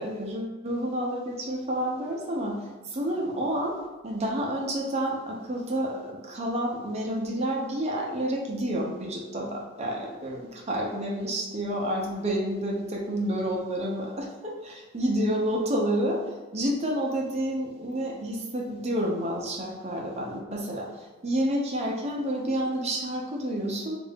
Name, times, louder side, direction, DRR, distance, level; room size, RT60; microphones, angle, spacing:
voice 1, 0.0-3.8 4.0-14.6 14.9-16.2 16.5-24.0, right 1 dB, 30° right, -1 dB, 0.6 m, -29 dB
3.6 x 2.5 x 3.5 m, 1.2 s
head